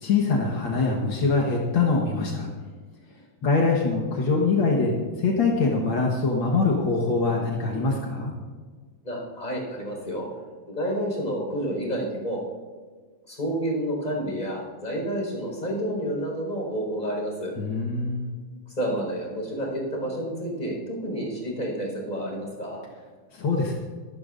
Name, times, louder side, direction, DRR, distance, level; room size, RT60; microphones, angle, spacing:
voice 1, 0.0-2.5 3.4-8.3 17.6-18.3 23.3-23.7, left 3 dB, 75° left, -2 dB, 2.1 m, -23 dB
voice 2, 9.0-10.3 10.7-12.4 13.3-17.5 18.8-22.8, equal, 20° left, -2 dB, 4.6 m, -29 dB
24.0 x 11.5 x 2.5 m, 1.5 s
omnidirectional pair, 2.2 m